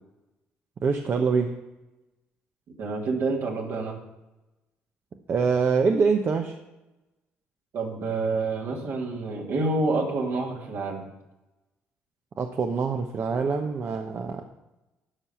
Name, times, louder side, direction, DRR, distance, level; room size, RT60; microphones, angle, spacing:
voice 1, 0.8-1.5 5.3-6.6 12.4-14.4, right 5 dB, 50° right, 4 dB, 1.0 m, -24 dB
voice 2, 2.8-4.0 7.7-11.1, right 3 dB, 70° right, -1 dB, 2.7 m, -28 dB
12.5 x 5.6 x 7.0 m, 1.0 s
supercardioid pair, 70°, 5 cm